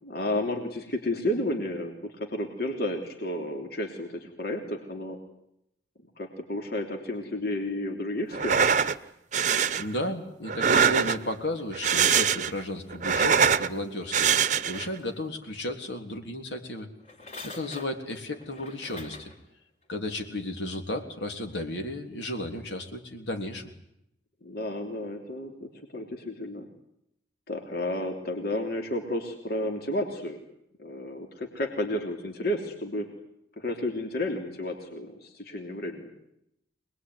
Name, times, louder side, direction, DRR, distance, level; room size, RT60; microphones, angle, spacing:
voice 1, 0.0-5.2 6.2-8.7 24.4-26.7 27.5-30.4 30.8-33.1 33.6-36.1, left 1 dB, 55° left, 4 dB, 3.2 m, -32 dB
sound 1, 8.3-9.0 9.3-9.8 10.5-11.3 11.7-12.6 12.9-13.7 14.1-14.9, right 6 dB, 40° right, 0.9 m, -23 dB
voice 2, 9.8-16.9 17.4-19.3 19.9-23.7, left 1 dB, 70° left, 4 dB, 3.6 m, -34 dB
sound 2, 13.9-15.4 17.0-19.4 20.0-20.1, left 2 dB, 35° left, 4.2 m, -46 dB
26.0 x 20.5 x 9.6 m, 0.80 s
head